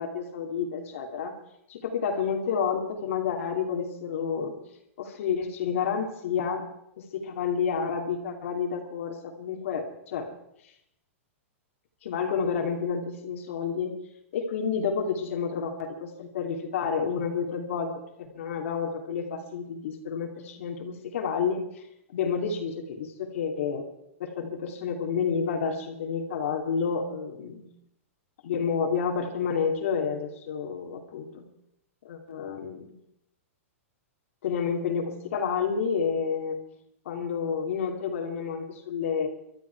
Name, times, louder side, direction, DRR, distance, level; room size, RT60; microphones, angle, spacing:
voice 1, 0.0-1.4 1.7-4.5 5.0-6.7 7.0-10.3 12.0-13.9 14.3-17.9 18.2-21.8 22.1-23.8 24.2-27.6 28.4-31.5 32.0-32.9 34.4-36.6 37.0-39.3, left 6 dB, 70° left, 2 dB, 2.8 m, -30 dB
24.5 x 12.5 x 4.7 m, 0.77 s
hypercardioid pair, 140°, 8 cm